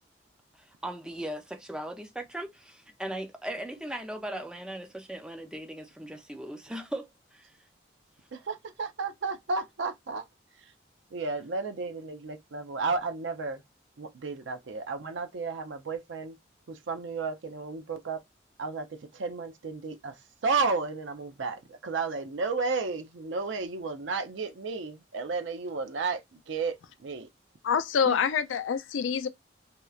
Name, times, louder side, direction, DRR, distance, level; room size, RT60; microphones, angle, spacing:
voice 1, 0.5-7.5, right 1 dB, 5° right, 0.4 m, -38 dB
voice 2, 8.3-10.2 11.1-13.6 14.0-16.4 16.7-18.2 18.6-27.3 28.0-28.2, right 4 dB, 75° right, 0.5 m, -33 dB
voice 3, 27.6-29.3, left 6 dB, 90° left, 0.4 m, -26 dB
2.9 x 2.1 x 2.3 m
head